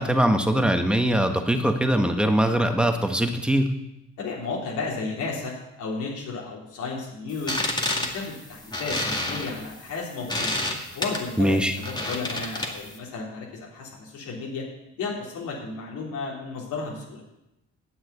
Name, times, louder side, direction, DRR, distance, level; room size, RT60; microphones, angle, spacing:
voice 1, 0.0-3.7 11.4-11.8, right 1 dB, 5° right, 5 dB, 1.4 m, -22 dB
voice 2, 4.2-7.6 7.8-10.5 10.9-14.7 15.0-17.2, left 4 dB, 85° left, -4 dB, 3.2 m, -33 dB
sound 1, 7.3-13.0, left 1 dB, 15° left, 2.1 m, -30 dB
9.3 x 7.6 x 8.2 m, 0.91 s
cardioid pair, 90°, 30 cm